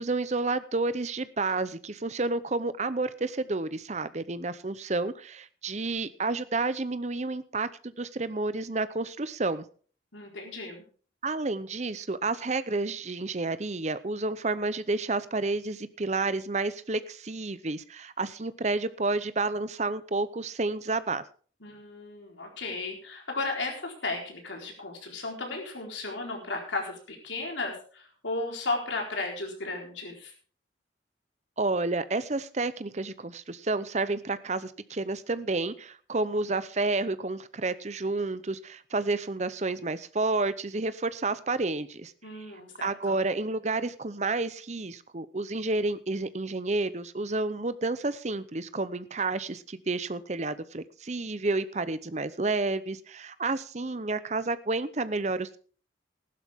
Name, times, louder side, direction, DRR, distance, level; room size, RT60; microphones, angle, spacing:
voice 1, 0.0-9.6 11.2-21.2 31.6-42.1 42.8-55.6, right 3 dB, 35° right, 14 dB, 0.7 m, -30 dB
voice 2, 10.1-10.8 21.6-30.3 42.2-43.1, left 3 dB, 75° left, 1 dB, 4.1 m, -35 dB
15.0 x 12.0 x 3.6 m, 0.42 s
head